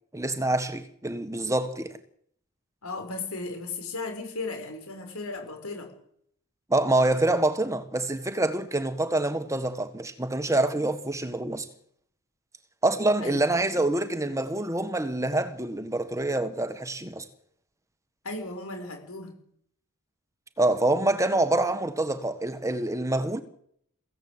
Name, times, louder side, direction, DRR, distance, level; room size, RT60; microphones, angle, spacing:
voice 1, 0.1-2.0 6.7-11.7 12.8-17.3 20.6-23.4, right 2 dB, 15° right, 1.4 m, -26 dB
voice 2, 2.8-5.9 13.2-13.5 18.2-19.3 21.0-21.1, left 3 dB, 85° left, 6.5 m, -35 dB
23.5 x 16.0 x 8.2 m
head